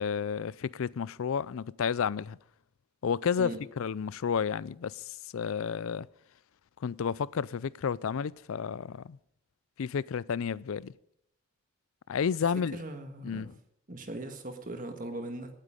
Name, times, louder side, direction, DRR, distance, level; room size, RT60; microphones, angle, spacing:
voice 1, 0.0-2.4 3.0-6.1 6.8-9.2 9.8-10.9 12.1-12.8 13.2-13.5, left 6 dB, 65° left, 0.4 m, -31 dB
voice 2, 12.7-13.5 13.9-15.5, right 1 dB, 35° right, 1.8 m, -39 dB
18.0 x 9.1 x 5.1 m
head